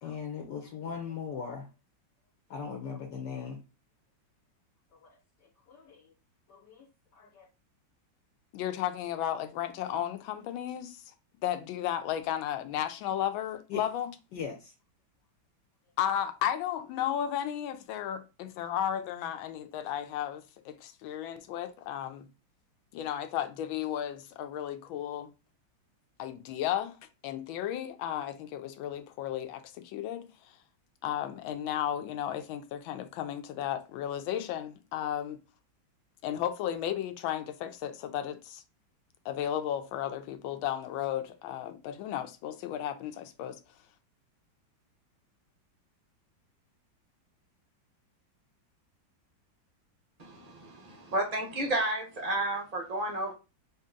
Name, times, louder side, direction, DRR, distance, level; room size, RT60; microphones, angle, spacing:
voice 1, 0.0-1.7 2.5-3.6 5.7-6.1 6.5-6.9 7.1-7.5 13.7-13.8 14.3-14.7, left 6 dB, 70° left, 1.3 m, -39 dB
voice 2, 8.5-11.0 11.4-14.1 16.0-22.3 22.9-25.3 26.2-27.0 27.2-30.3 31.0-35.4 36.2-38.6 39.2-43.6, left 10 dB, 85° left, 1.4 m, -34 dB
voice 3, 50.2-53.3, right 1 dB, 85° right, 0.3 m, -32 dB
3.6 x 2.8 x 3.6 m
omnidirectional pair, 2.1 m